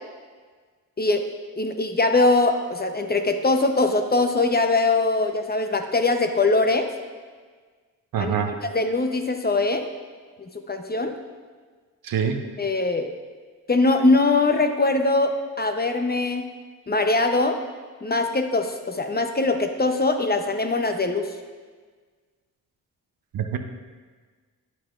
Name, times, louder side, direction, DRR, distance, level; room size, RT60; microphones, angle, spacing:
voice 1, 1.6-6.9 8.2-8.3 8.7-9.8 10.4-11.1 12.6-13.1 13.7-15.3 15.6-16.4 16.9-17.6 18.0-21.3, left 3 dB, 25° left, 6 dB, 0.8 m, -22 dB
voice 2, 8.1-8.5 12.0-12.4 23.3-23.6, right 7 dB, 70° right, 6 dB, 0.7 m, -24 dB
9.5 x 7.7 x 2.5 m, 1.5 s
supercardioid pair, 45°, 35 cm